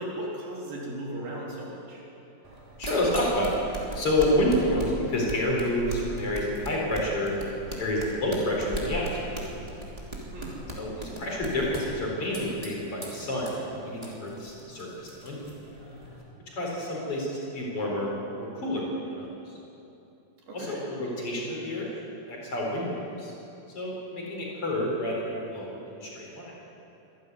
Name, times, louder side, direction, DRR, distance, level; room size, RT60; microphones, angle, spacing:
voice 1, 0.0-2.0 10.3-10.6 20.5-20.8, right 1 dB, 85° right, -3 dB, 5.3 m, -36 dB
sound 1, 2.4-16.2, right 1 dB, 10° right, 2.6 m, -39 dB
voice 2, 2.8-3.5 3.9-7.3 7.7-9.2 10.8-15.4 16.5-18.1 18.4-19.6 20.5-21.9 22.3-23.3 23.7-26.5, left 1 dB, 40° left, -3 dB, 5.2 m, -29 dB
25.0 x 11.5 x 9.6 m, 2.8 s
omnidirectional pair, 4.0 m